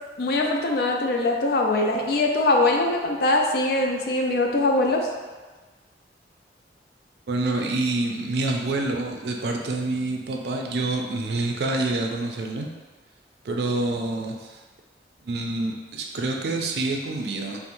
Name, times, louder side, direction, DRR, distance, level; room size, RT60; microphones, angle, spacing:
voice 1, 0.2-5.1, left 2 dB, 60° left, 1 dB, 0.4 m, -22 dB
voice 2, 7.3-12.7 13.4-14.6 15.2-17.6, right 2 dB, 65° right, 1 dB, 0.4 m, -27 dB
4.2 x 2.1 x 2.6 m, 1.3 s
head